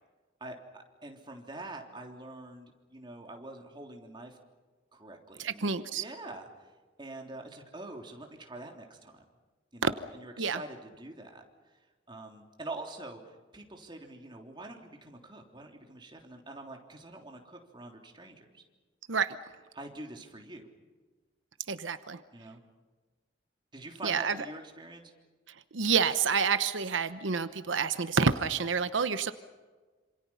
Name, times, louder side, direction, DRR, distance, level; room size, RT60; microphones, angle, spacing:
voice 1, 0.4-4.4 4.9-5.7 5.9-6.7 7.0-9.3 9.7-11.4 12.1-18.6 19.7-20.7 22.3-22.6 23.7-25.1, right 2 dB, 25° right, 2 dB, 3.4 m, -45 dB
voice 2, 5.4-6.0 9.8-9.9 10.4-10.6 19.1-19.4 21.7-22.2 24.0-24.3 25.7-29.3, right 5 dB, 90° right, 11 dB, 1.0 m, -28 dB
27.5 x 27.0 x 5.8 m, 1.4 s
head